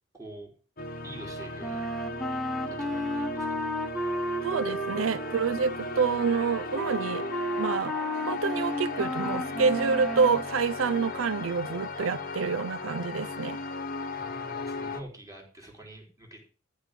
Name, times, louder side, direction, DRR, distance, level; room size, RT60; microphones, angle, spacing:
voice 1, 0.1-0.5 1.0-1.9 2.7-3.7 14.1-16.4, right 1 dB, 15° right, 4.2 m, -46 dB
sound 1, 0.8-15.0, left 2 dB, 45° left, 1.1 m, -36 dB
Wind instrument woodwind instrument, 1.6-10.5, equal, ahead, 1.4 m, -33 dB
voice 2, 4.4-7.2 7.6-7.9 8.3-13.6, right 5 dB, 80° right, 0.5 m, -27 dB
14.0 x 5.1 x 7.5 m
head